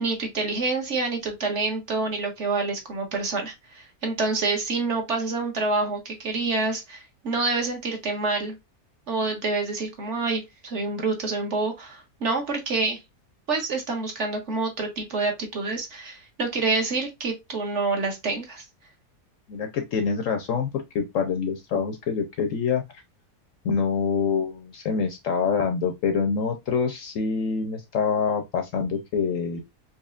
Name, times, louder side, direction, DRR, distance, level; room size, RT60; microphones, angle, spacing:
voice 1, 0.0-8.5 9.1-13.0 13.5-18.6, right 3 dB, 55° right, 1.1 m, -27 dB
voice 2, 19.5-20.7 20.9-22.8 23.6-29.6, left 5 dB, 65° left, 0.8 m, -26 dB
4.2 x 2.9 x 2.4 m
omnidirectional pair, 1.7 m